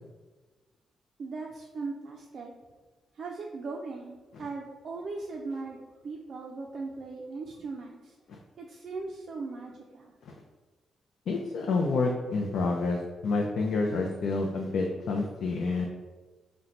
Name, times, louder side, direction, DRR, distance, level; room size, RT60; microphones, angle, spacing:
voice 1, 1.2-2.5 3.1-5.8 6.0-8.1 8.6-10.1, right 3 dB, 60° right, -1 dB, 0.4 m, -38 dB
voice 2, 11.3-15.9, left 3 dB, 75° left, 1 dB, 0.4 m, -28 dB
4.2 x 2.2 x 3.8 m, 1.3 s
cardioid pair, 85°, 0 cm